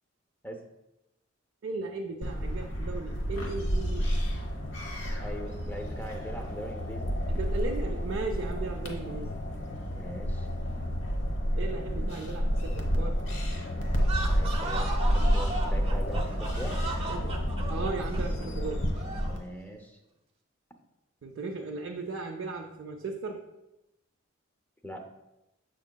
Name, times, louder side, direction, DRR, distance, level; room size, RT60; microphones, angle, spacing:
voice 1, 1.6-4.1 7.3-9.4 11.5-13.2 17.1-18.9 21.2-23.4, right 3 dB, 75° right, 1 dB, 0.5 m, -36 dB
sound 1, 2.2-19.4, equal, 65° left, 1.1 m, -30 dB
voice 2, 5.2-7.2 9.9-10.5 14.3-16.8 19.3-20.0 24.8-25.0, equal, 10° left, 4 dB, 0.6 m, -41 dB
sound 2, 14.0-19.4, right 2 dB, 30° right, 0.7 m, -37 dB
7.1 x 5.8 x 2.2 m, 0.91 s
head